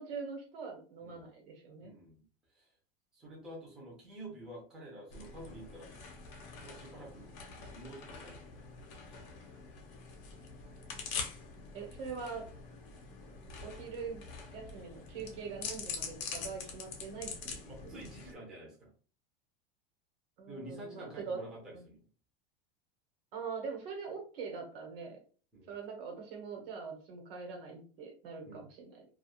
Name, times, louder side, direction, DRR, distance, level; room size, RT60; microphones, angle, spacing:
voice 1, 0.0-1.9 11.7-12.5 13.3-13.4 13.6-14.2 14.5-18.0 20.4-21.4 21.7-21.8 23.3-25.2 25.7-29.0, right 5 dB, 75° right, 2 dB, 1.1 m, -43 dB
voice 2, 1.8-2.2 2.5-2.7 3.1-5.9 6.5-8.4 9.1-9.2 17.6-18.9 20.4-22.1 25.5-25.7 28.4-28.7, right 1 dB, 5° right, -5 dB, 0.4 m, -49 dB
sound 1, 5.1-18.3, left 5 dB, 40° left, 0.6 m, -45 dB
2.3 x 2.3 x 2.9 m, 0.40 s
supercardioid pair, 175°, 29 cm